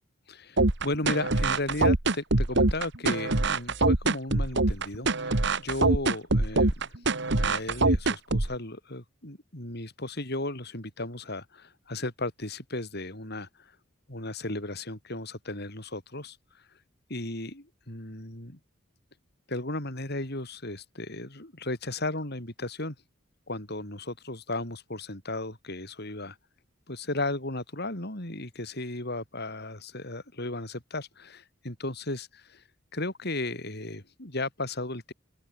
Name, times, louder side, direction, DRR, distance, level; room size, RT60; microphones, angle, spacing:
voice 1, 0.3-6.9 7.3-13.7 14.1-16.4 17.1-18.6 19.5-23.0 23.5-26.4 26.9-32.6 32.9-35.1, left 2 dB, 55° left, 5.2 m, -35 dB
sound 1, 0.6-8.6, right 2 dB, 60° right, 1.8 m, -24 dB
open air
head